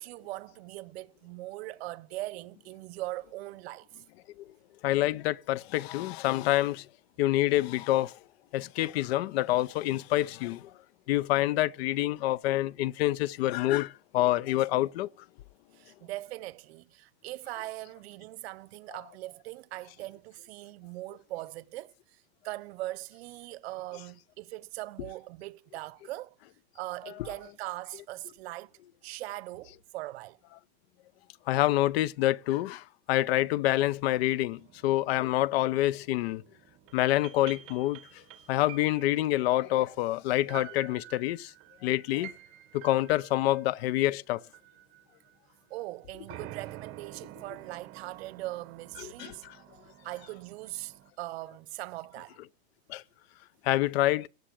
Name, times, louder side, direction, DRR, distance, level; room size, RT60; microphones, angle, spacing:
voice 1, 0.0-4.0 15.7-26.3 26.7-28.7 29.0-30.4 45.7-49.5 50.0-52.4, right 18 dB, 65° right, 1.0 m, -40 dB
voice 2, 4.8-6.9 7.2-8.2 8.5-10.7 11.1-15.1 23.9-24.0 27.0-27.3 27.9-28.0 31.5-36.4 36.9-38.0 38.5-41.5 41.8-42.3 42.7-44.4 46.2-46.3 49.2-49.6 52.9-53.0 53.6-54.3, left 15 dB, 65° left, 0.7 m, -27 dB
sound 1, 33.7-45.4 46.3-51.1, right 14 dB, 40° right, 1.5 m, -50 dB
17.5 x 7.7 x 8.8 m
supercardioid pair, 150°, 34 cm